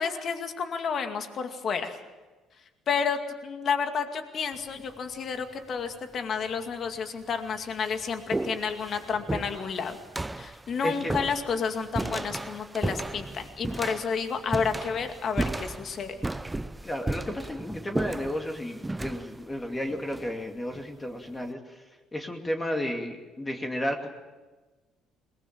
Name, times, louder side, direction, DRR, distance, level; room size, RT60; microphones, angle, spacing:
voice 1, 0.0-2.0 2.9-10.0 10.4-16.2, left 6 dB, 50° left, 6 dB, 2.2 m, -30 dB
sound 1, 4.5-5.0 5.9-6.0 6.8-6.9 7.3-20.9, right 2 dB, 15° right, 0.7 m, -35 dB
voice 2, 16.8-21.8 22.1-24.1, equal, 15° left, 3 dB, 2.5 m, -32 dB
21.0 x 20.0 x 7.5 m, 1.2 s
supercardioid pair, 80°, 0 cm